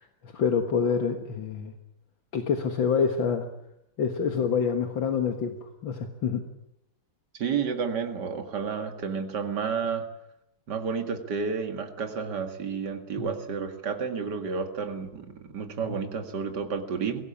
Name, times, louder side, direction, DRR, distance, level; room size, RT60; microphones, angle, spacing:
voice 1, 0.2-1.7 2.3-3.5 4.0-6.5 13.2-13.3, left 6 dB, 70° left, 6 dB, 2.2 m, -27 dB
voice 2, 7.4-10.1 10.7-17.2, right 6 dB, 55° right, 7 dB, 2.6 m, -31 dB
22.5 x 17.5 x 8.7 m, 0.81 s
omnidirectional pair, 2.2 m